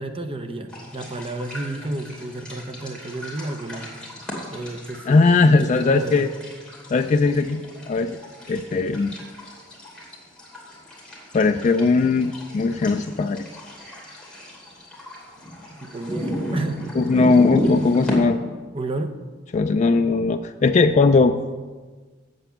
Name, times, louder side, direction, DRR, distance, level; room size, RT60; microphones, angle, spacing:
voice 1, 0.0-4.0 4.5-6.3 15.7-16.8 18.7-19.1, right 2 dB, 30° right, 6 dB, 0.8 m, -31 dB
sound 1, 0.7-18.1, equal, 5° left, 2.5 m, -34 dB
voice 2, 5.1-6.3 6.9-8.2 8.5-9.1 11.3-13.5 17.0-18.4 19.5-21.4, left 3 dB, 35° left, 7 dB, 0.3 m, -19 dB
7.9 x 7.6 x 7.1 m, 1.4 s
head